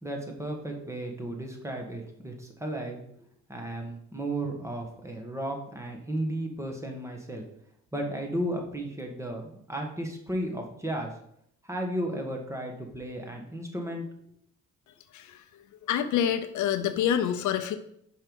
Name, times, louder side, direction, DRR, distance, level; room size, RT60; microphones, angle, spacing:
voice 1, 0.0-3.0 3.5-7.4 7.9-11.1 11.6-14.0, right 1 dB, 10° right, 2 dB, 1.5 m, -34 dB
voice 2, 15.1-15.4 15.9-17.8, left 9 dB, 75° left, 9 dB, 0.7 m, -27 dB
5.6 x 4.7 x 5.4 m, 0.71 s
cardioid pair, 90°, 30 cm